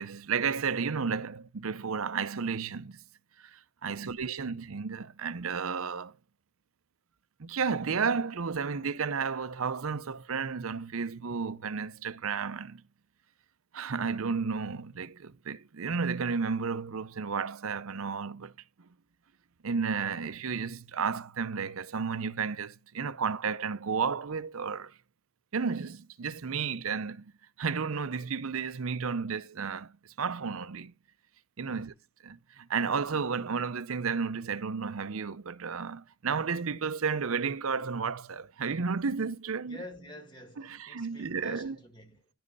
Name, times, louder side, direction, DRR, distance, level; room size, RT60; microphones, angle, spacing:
voice 1, 0.0-3.0 3.4-6.1 7.4-12.8 13.7-18.5 18.8-18.9 19.6-24.9 25.5-27.3 27.6-30.9 31.6-31.9 32.2-39.8 40.7-41.7, right 5 dB, 75° right, 0.6 m, -32 dB
voice 2, 3.8-4.2 31.6-32.0 39.6-42.3, left 1 dB, 20° left, 2.1 m, -49 dB
11.0 x 5.3 x 4.0 m
head